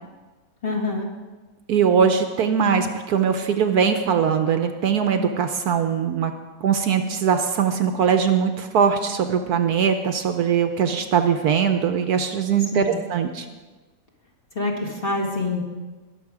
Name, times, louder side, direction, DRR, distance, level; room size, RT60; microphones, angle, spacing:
voice 1, 0.6-1.1 12.7-13.0 14.6-15.6, left 2 dB, 35° left, -1 dB, 1.8 m, -26 dB
voice 2, 1.7-6.3 6.6-13.4, right 7 dB, 65° right, 7 dB, 1.2 m, -21 dB
20.5 x 7.1 x 4.9 m, 1.3 s
omnidirectional pair, 1.9 m